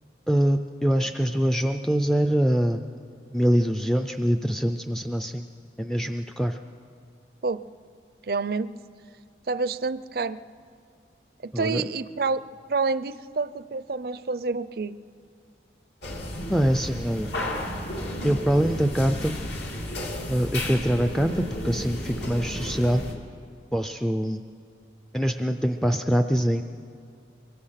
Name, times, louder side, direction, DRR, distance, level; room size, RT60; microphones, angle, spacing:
voice 1, 0.3-2.8 3.3-5.4 5.8-6.6 11.5-11.8 16.5-17.3 18.2-19.4 20.3-23.0 23.7-24.4 25.1-26.6, equal, ahead, 7 dB, 0.4 m, -24 dB
voice 2, 8.3-8.7 9.5-10.4 11.4-12.4 12.7-15.0, right 4 dB, 55° right, 15 dB, 0.5 m, -28 dB
sound 1, 16.0-23.1, left 1 dB, 70° left, 2.7 m, -33 dB
23.5 x 22.5 x 5.8 m, 2.4 s
head